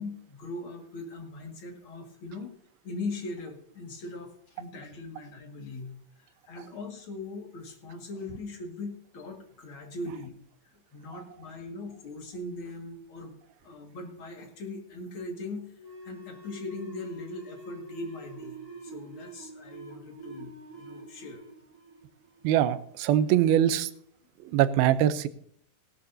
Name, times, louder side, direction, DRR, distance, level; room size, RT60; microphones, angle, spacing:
voice 1, 0.0-2.5 2.8-5.9 6.2-10.4 10.6-13.3 13.6-18.6 18.8-21.4, left 2 dB, 45° left, 2 dB, 2.1 m, -40 dB
sound 1, 15.8-23.0, right 2 dB, 25° right, 2.7 m, -45 dB
voice 2, 22.4-23.9 24.4-25.3, right 11 dB, 85° right, 13 dB, 2.6 m, -23 dB
17.5 x 12.5 x 2.7 m, 0.64 s
omnidirectional pair, 4.2 m